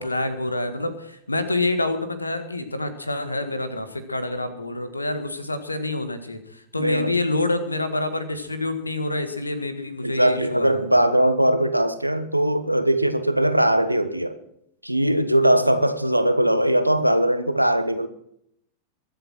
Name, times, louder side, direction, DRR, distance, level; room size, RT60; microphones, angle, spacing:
voice 1, 0.0-10.8 15.5-15.8, left 2 dB, 80° left, 1.7 m, -27 dB
voice 2, 6.8-7.1 10.0-14.4 14.8-18.1, right 1 dB, 90° right, 1.2 m, -20 dB
23.0 x 8.1 x 6.1 m
figure-of-eight pair, 90°, 0 cm